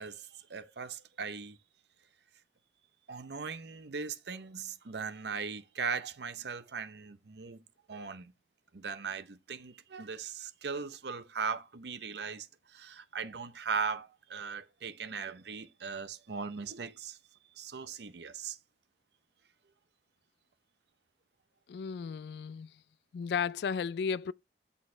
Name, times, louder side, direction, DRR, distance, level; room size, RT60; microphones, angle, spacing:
voice 1, 0.0-1.6 3.1-7.6 7.9-8.3 8.7-17.2 17.5-18.6, right 5 dB, 70° right, 0.7 m, -39 dB
voice 2, 21.7-22.7 23.1-24.3, left 6 dB, 65° left, 0.3 m, -34 dB
7.0 x 6.4 x 3.2 m
head